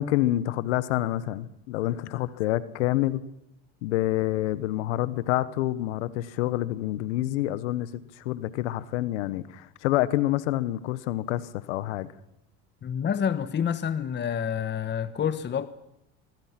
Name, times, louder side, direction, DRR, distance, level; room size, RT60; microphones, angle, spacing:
voice 1, 0.0-3.2 3.8-7.9 8.2-12.1, left 15 dB, 85° left, 1.3 m, -27 dB
voice 2, 12.8-15.7, left 8 dB, 30° left, 1.3 m, -28 dB
24.5 x 24.5 x 6.0 m
supercardioid pair, 95°, 34 cm